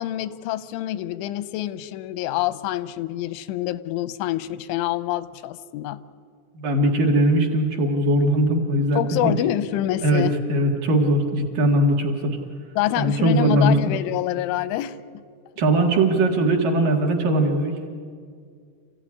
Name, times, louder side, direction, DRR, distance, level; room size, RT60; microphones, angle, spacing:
voice 1, 0.0-6.0 8.9-10.4 12.8-15.0, left 14 dB, 90° left, 15 dB, 3.2 m, -26 dB
voice 2, 6.6-9.3 10.0-10.2 10.5-12.2 13.0-13.8 15.6-17.7, right 1 dB, 55° right, 1 dB, 3.0 m, -20 dB
27.5 x 16.0 x 9.8 m, 2.2 s
omnidirectional pair, 5.3 m